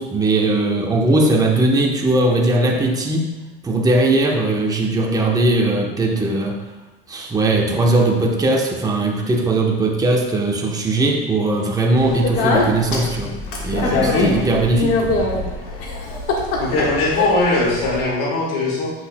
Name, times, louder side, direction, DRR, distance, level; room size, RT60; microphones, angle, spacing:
voice 1, 0.0-3.3 3.6-6.6 7.1-13.3 13.6-15.2, right 2 dB, 15° right, 0 dB, 0.9 m, -19 dB
Speech, 12.0-18.0, left 3 dB, 50° left, 1.5 m, -23 dB
voice 2, 16.6-18.9, left 2 dB, 85° left, -4 dB, 2.1 m, -20 dB
8.0 x 6.2 x 2.2 m, 1.1 s
supercardioid pair, 100°, 29 cm